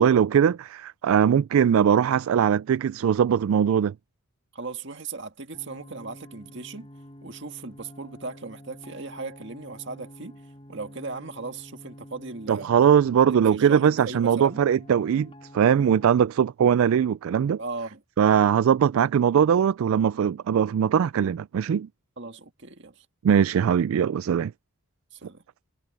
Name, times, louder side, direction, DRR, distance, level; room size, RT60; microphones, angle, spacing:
voice 1, 0.0-3.9 12.5-17.6 18.2-21.9 23.2-24.5, right 8 dB, 75° right, 0.3 m, -21 dB
voice 2, 4.5-6.9 7.2-10.4 10.7-12.7 13.2-14.6 17.6-18.0 22.2-23.1 25.1-25.4, right 3 dB, 55° right, 1.9 m, -37 dB
sound 1, 5.5-16.2, equal, 25° left, 5.0 m, -48 dB
head